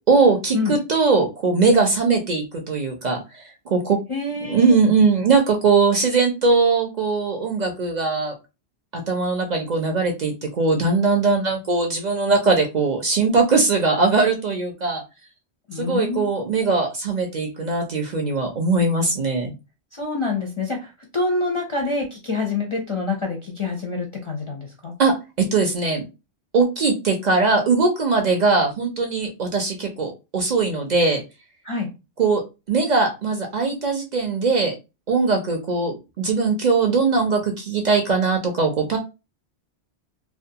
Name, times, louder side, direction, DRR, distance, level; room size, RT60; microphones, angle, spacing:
voice 1, 0.1-4.0 4.4-8.3 8.9-15.0 15.7-19.5 25.0-25.1 25.5-26.0 26.5-31.2 32.2-32.4 32.7-34.7 35.1-39.0, right 4 dB, 55° right, 3 dB, 0.5 m, -20 dB
voice 2, 4.1-4.8 15.7-16.3 19.9-24.9 31.6-31.9, left 3 dB, 45° left, 1 dB, 0.4 m, -26 dB
2.4 x 2.2 x 2.6 m, 0.27 s
omnidirectional pair, 1.1 m